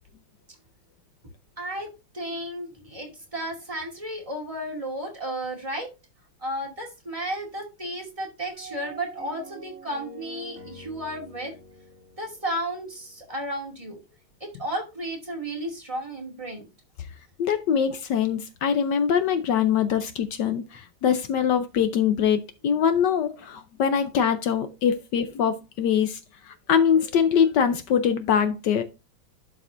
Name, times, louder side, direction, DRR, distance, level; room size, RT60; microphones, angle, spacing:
voice 1, 1.6-1.9 2.1-5.9 6.4-11.5 12.2-14.0 14.4-16.7, right 1 dB, 15° right, 2.1 m, -33 dB
sound 1, 8.5-13.7, right 2 dB, 45° right, 2.4 m, -46 dB
voice 2, 17.4-26.2 26.7-28.8, left 8 dB, 70° left, 1.0 m, -23 dB
11.5 x 4.9 x 2.5 m
omnidirectional pair, 2.4 m